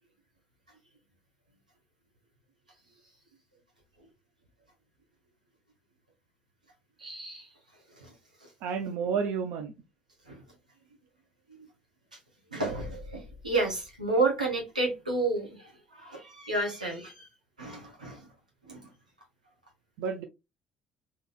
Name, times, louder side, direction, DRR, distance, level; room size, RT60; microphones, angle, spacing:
voice 1, 7.0-7.5 8.0-8.1 8.4-8.5 10.3-10.4 11.5-11.6 12.5-17.3 17.6-18.2 18.6-18.9, right 2 dB, 90° right, 1.0 m, -31 dB
voice 2, 8.6-9.7 20.0-20.2, right 6 dB, 65° right, 0.5 m, -31 dB
3.8 x 2.9 x 2.2 m
figure-of-eight pair, 50°, 4 cm